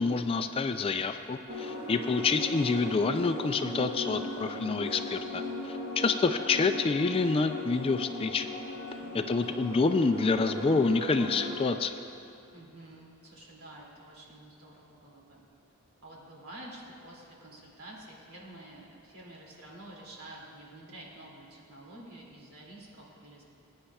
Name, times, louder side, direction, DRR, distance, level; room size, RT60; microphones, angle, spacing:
voice 1, 0.0-8.5 9.1-11.9, left 4 dB, 25° left, 8 dB, 0.3 m, -27 dB
sound 1, 1.5-11.7, left 2 dB, 40° right, 1.8 m, -38 dB
voice 2, 9.0-9.6 12.5-15.5 16.0-23.4, right 1 dB, 80° right, -4 dB, 2.6 m, -49 dB
20.0 x 9.8 x 2.3 m, 2.7 s
head